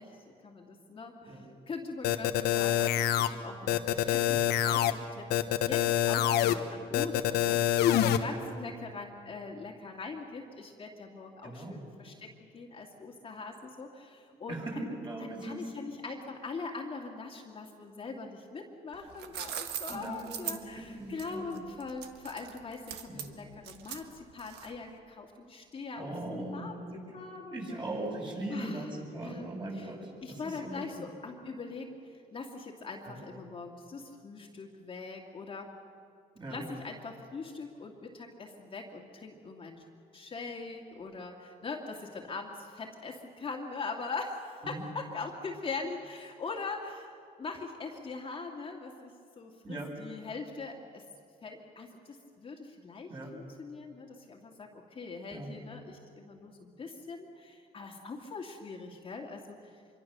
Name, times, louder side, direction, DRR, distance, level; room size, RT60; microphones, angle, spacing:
voice 1, 0.0-5.3 5.6-14.6 15.2-27.8 28.5-28.9 29.2-29.9 30.2-35.7 36.5-39.8 40.1-47.1 47.4-51.0 51.4-59.8, left 4 dB, 30° left, 0 dB, 2.2 m, -42 dB
sound 1, 2.0-3.3 3.7-4.9 5.3-6.5 6.9-8.2, left 11 dB, 75° left, 1.3 m, -26 dB
voice 2, 11.4-11.8 14.3-15.7 19.9-21.6 23.1-23.3 25.9-27.0 27.5-31.1 33.1-33.2 36.4-36.6 44.6-44.8 49.6-49.9 53.1-53.3 55.3-55.5, right 2 dB, 30° right, -2 dB, 7.7 m, -40 dB
sound 2, 18.9-24.9, right 10 dB, 80° right, 1.5 m, -41 dB
26.0 x 23.5 x 6.8 m, 2.3 s
cardioid pair, 110°, 17 cm